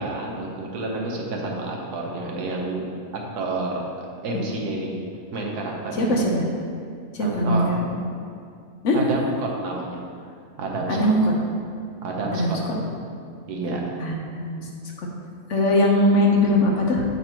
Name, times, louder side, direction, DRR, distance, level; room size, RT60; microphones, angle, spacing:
voice 1, 0.0-2.9 3.3-5.0 5.3-6.2 7.2-7.8 8.9-10.0 10.6-11.1 12.0-12.9 13.5-13.8, right 2 dB, 85° right, -1 dB, 1.5 m, -29 dB
voice 2, 6.0-6.4 7.2-7.8 8.8-9.0 10.9-11.2 12.3-12.6 14.0-14.6 15.5-17.0, left 1 dB, 55° left, -1 dB, 1.1 m, -20 dB
8.0 x 4.0 x 4.4 m, 2.3 s
omnidirectional pair, 1.6 m